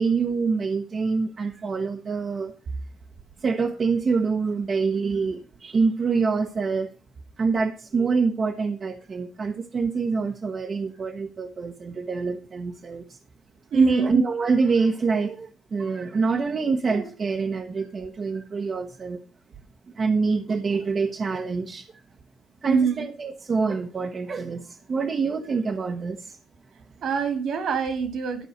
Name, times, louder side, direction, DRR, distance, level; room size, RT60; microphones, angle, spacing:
voice 1, 0.0-2.5 3.4-6.9 7.4-13.2 13.7-19.2 19.9-21.9 22.6-26.4, right 4 dB, 40° right, 5 dB, 0.9 m, -25 dB
voice 2, 13.7-14.1 22.6-23.0 27.0-28.5, right 6 dB, 75° right, 8 dB, 2.3 m, -24 dB
12.0 x 4.6 x 6.4 m, 0.39 s
cardioid pair, 90°, 0 cm